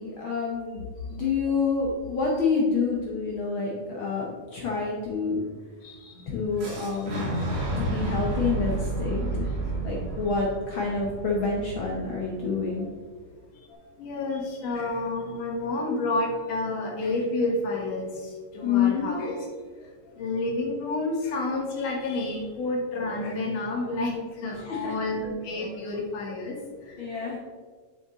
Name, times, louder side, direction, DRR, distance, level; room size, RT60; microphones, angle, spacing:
voice 1, 0.0-5.4 6.3-7.3 7.8-9.5 9.8-12.9 18.6-19.1 24.7-24.9 27.0-27.4, left 5 dB, 90° left, -2 dB, 1.1 m, -28 dB
voice 2, 5.8-6.5 7.1-8.2 9.1-9.4 9.6-9.8 10.1-10.2 12.7-12.9 14.0-19.4 20.2-27.4, left 2 dB, 60° left, 0 dB, 2.3 m, -30 dB
Fire / Explosion, 6.6-12.5, right 2 dB, 50° right, 2.8 m, -31 dB
8.0 x 7.0 x 3.7 m, 1.5 s
omnidirectional pair, 3.9 m